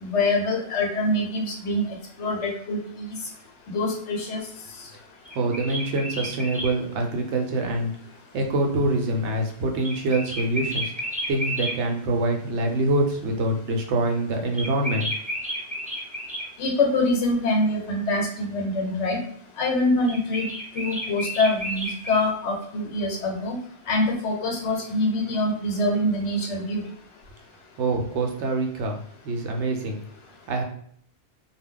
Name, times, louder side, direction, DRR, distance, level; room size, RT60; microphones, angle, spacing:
voice 1, 0.0-3.1 3.7-4.4 16.6-19.2 19.6-20.5 20.7-23.6 23.9-26.8, left 2 dB, 75° left, 1 dB, 1.0 m, -25 dB
sound 1, 5.2-6.7 9.8-11.8 14.5-16.5 20.0-22.2, equal, 15° right, 0.3 m, -31 dB
voice 2, 5.3-7.9 8.3-10.9 11.3-15.1 27.8-29.0 29.2-30.0 30.5-30.6, right 2 dB, 75° right, 3 dB, 0.8 m, -25 dB
2.2 x 2.0 x 3.6 m, 0.66 s
omnidirectional pair, 1.2 m